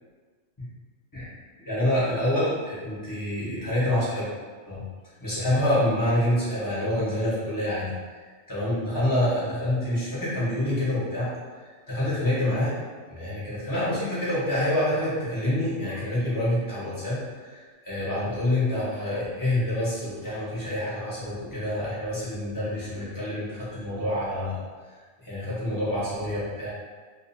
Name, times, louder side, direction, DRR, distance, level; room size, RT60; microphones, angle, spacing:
voice 1, 1.6-4.2 4.6-4.8 5.2-7.9 8.5-11.3 11.9-12.7 13.1-24.6 25.2-26.7, left 1 dB, 20° left, -10 dB, 0.8 m, -27 dB
2.5 x 2.4 x 2.6 m, 1.5 s
omnidirectional pair, 1.3 m